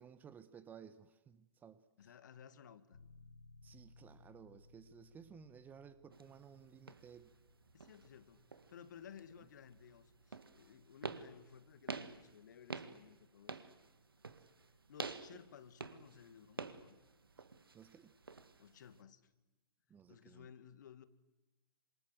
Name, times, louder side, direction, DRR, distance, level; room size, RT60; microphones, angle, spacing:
voice 1, 0.0-2.1 3.6-7.3 15.3-15.4 17.7-18.1 19.9-20.5, right 7 dB, 15° right, 15 dB, 1.1 m, -57 dB
voice 2, 2.0-3.0 7.7-8.4 8.7-13.7 14.9-17.0 18.6-19.3 20.1-21.0, left 8 dB, 50° left, 13 dB, 1.9 m, -57 dB
sound 1, 2.9-13.5, left 3 dB, 75° left, 4.8 m, -65 dB
sound 2, 6.1-19.0, right 4 dB, 75° right, 1.9 m, -50 dB
28.0 x 26.5 x 7.9 m, 1.0 s
figure-of-eight pair, 120°, 12 cm